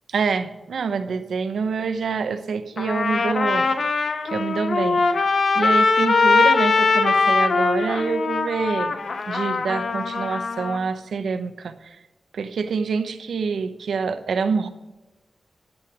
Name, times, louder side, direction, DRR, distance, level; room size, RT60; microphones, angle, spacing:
voice 1, 0.1-3.7 4.2-5.1 5.5-8.9 9.3-12.0 12.3-14.7, right 5 dB, 85° right, 10 dB, 0.8 m, -26 dB
Trumpet, 2.8-10.8, left 4 dB, 50° left, 0.8 m, -21 dB
10.5 x 8.9 x 4.9 m, 1.1 s
wide cardioid pair, 175°, 0 cm